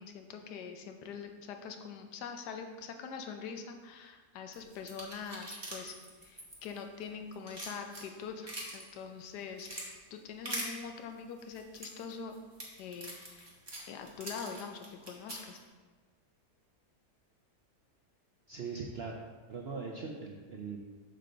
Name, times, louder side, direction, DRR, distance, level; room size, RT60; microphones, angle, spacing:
voice 1, 0.0-5.9 6.2-12.4 12.8-13.5 13.9-15.6, left 6 dB, 85° left, 5 dB, 1.3 m, -44 dB
sound 1, 4.5-7.0 7.3-8.8 9.3-9.9 10.5-10.7 11.4-15.6, right 1 dB, 15° right, 1.2 m, -43 dB
voice 2, 18.5-19.2 19.5-20.8, right 5 dB, 60° right, 0 dB, 0.6 m, -40 dB
6.8 x 6.6 x 3.9 m, 1.4 s
omnidirectional pair, 1.7 m